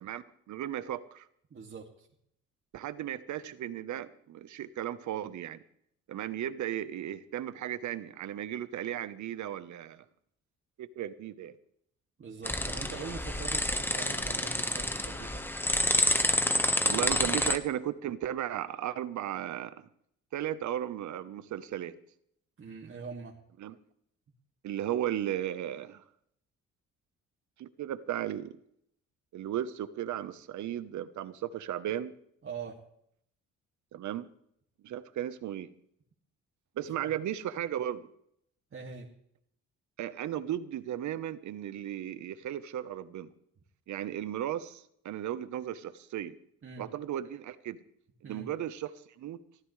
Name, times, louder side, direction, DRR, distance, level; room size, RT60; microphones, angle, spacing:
voice 1, 0.0-1.3 2.7-5.6 6.1-10.0 10.8-11.6 16.8-19.9 20.3-21.9 23.6-23.8 24.6-26.0 27.6-28.5 29.3-32.1 33.9-34.3 34.8-35.7 36.8-38.1 40.0-43.3 43.9-46.4 46.8-47.8 48.2-49.4, right 11 dB, 70° right, 13 dB, 1.1 m, -35 dB
voice 2, 1.5-2.1 12.2-15.4 22.6-23.3 32.4-32.8 38.7-39.1 46.6-46.8 48.2-48.5, right 5 dB, 45° right, -1 dB, 2.4 m, -43 dB
sound 1, 12.5-17.6, left 1 dB, 5° left, 1.3 m, -28 dB
23.5 x 14.0 x 3.3 m, 0.70 s
cardioid pair, 90°, 30 cm